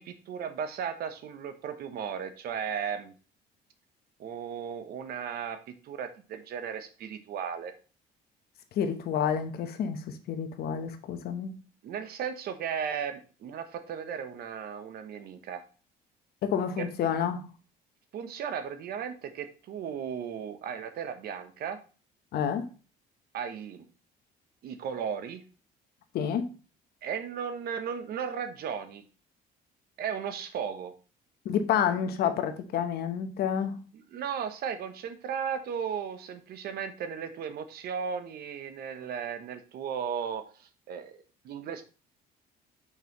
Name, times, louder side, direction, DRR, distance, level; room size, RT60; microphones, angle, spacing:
voice 1, 0.0-3.1 4.2-7.7 11.8-15.6 16.8-16.9 18.1-21.8 23.3-23.9 24.6-25.4 27.0-29.0 30.0-30.9 33.9-41.2 41.4-41.8, right 7 dB, 65° right, 1.0 m, -35 dB
voice 2, 8.8-11.5 16.4-17.5 22.3-22.7 26.1-26.5 31.4-33.8, left 8 dB, 70° left, 1.0 m, -29 dB
6.6 x 5.4 x 3.1 m
cardioid pair, 110°, 17 cm